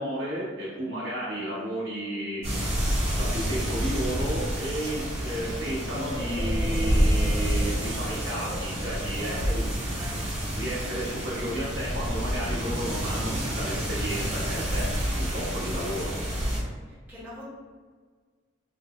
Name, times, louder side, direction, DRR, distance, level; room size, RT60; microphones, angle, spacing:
voice 1, 0.0-2.4 3.2-9.6 10.4-16.2, right 1 dB, 70° right, -7 dB, 1.1 m, -33 dB
sound 1, 2.4-16.6, equal, 30° right, 1.0 m, -28 dB
sound 2, 5.8-9.5, equal, 25° left, 0.9 m, -40 dB
voice 2, 9.2-9.6 9.9-10.2 15.6-16.2 16.9-17.4, equal, 10° right, -11 dB, 1.3 m, -45 dB
3.2 x 2.6 x 3.0 m, 1.5 s
head